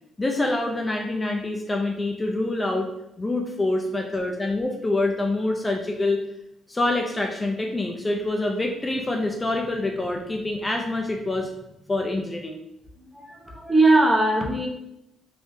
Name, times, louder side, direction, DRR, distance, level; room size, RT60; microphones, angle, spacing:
voice 1, 0.2-2.9 3.2-6.2 6.7-11.5 11.9-12.6 13.3-13.4, left 2 dB, 20° left, 2 dB, 0.4 m, -26 dB
voice 2, 13.0-14.7, right 2 dB, 25° right, 0 dB, 0.7 m, -20 dB
3.5 x 2.6 x 2.6 m, 0.83 s
cardioid pair, 90°, 0 cm